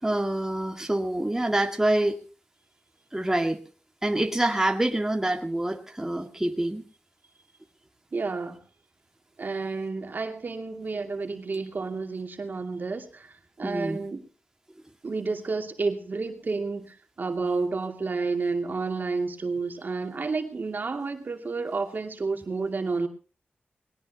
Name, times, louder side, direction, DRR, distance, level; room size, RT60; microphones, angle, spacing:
voice 1, 0.0-2.2 3.1-3.6 4.0-6.8 13.6-14.0, right 1 dB, 15° right, 2.1 m, -26 dB
voice 2, 8.1-8.6 9.4-14.2 15.0-23.1, right 4 dB, 55° right, 2.6 m, -30 dB
21.5 x 18.0 x 2.9 m
wide cardioid pair, 80°, 4 cm